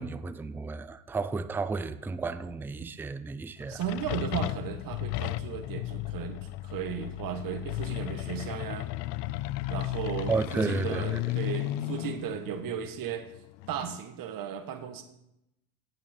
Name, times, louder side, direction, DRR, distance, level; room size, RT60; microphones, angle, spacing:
voice 1, 0.0-3.8 10.3-11.2, right 4 dB, 5° right, 0.3 m, -32 dB
sound 1, 3.6-14.0, left 16 dB, 55° left, 0.5 m, -34 dB
voice 2, 3.7-8.9 9.7-13.2 13.7-15.0, right 8 dB, 45° right, 1.4 m, -35 dB
16.0 x 9.1 x 4.4 m
supercardioid pair, 110°, 49 cm